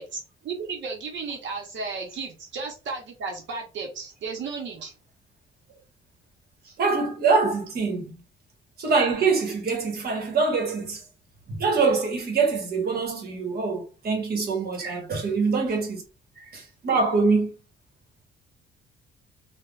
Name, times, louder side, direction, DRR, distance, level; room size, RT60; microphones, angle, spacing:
voice 1, 0.0-4.9 14.8-15.1, right 4 dB, 70° right, 0.8 m, -34 dB
voice 2, 6.8-8.2 8.8-11.0 11.5-16.0 16.4-17.5, right 4 dB, 50° right, 1.2 m, -24 dB
3.3 x 2.2 x 2.4 m
cardioid pair, 90°, 20 cm